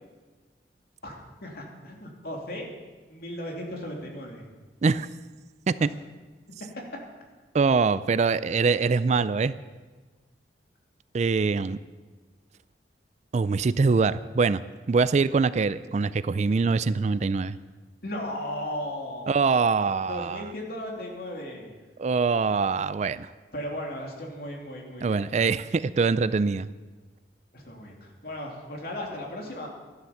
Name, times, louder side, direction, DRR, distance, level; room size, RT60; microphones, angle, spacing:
voice 1, 1.0-2.7 3.1-4.4 18.0-19.4 20.1-21.7 23.5-25.9 27.5-29.7, left 1 dB, 60° left, 0 dB, 2.9 m, -36 dB
voice 2, 7.5-9.5 11.1-11.8 13.3-14.6 14.9-17.6 19.3-20.5 22.0-23.3 25.0-26.7, right 4 dB, 40° right, 16 dB, 0.4 m, -23 dB
13.0 x 11.5 x 7.1 m, 1.3 s
head